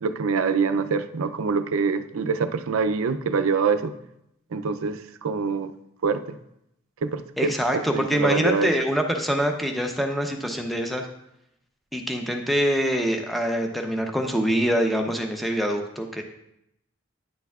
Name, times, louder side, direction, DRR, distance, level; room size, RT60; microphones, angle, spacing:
voice 1, 0.0-3.9 4.5-5.7 6.0-6.4 7.0-8.7, right 5 dB, 85° right, 10 dB, 0.5 m, -25 dB
voice 2, 7.4-11.1 11.9-16.2, equal, ahead, 3 dB, 0.7 m, -25 dB
9.9 x 6.7 x 2.4 m, 0.81 s
head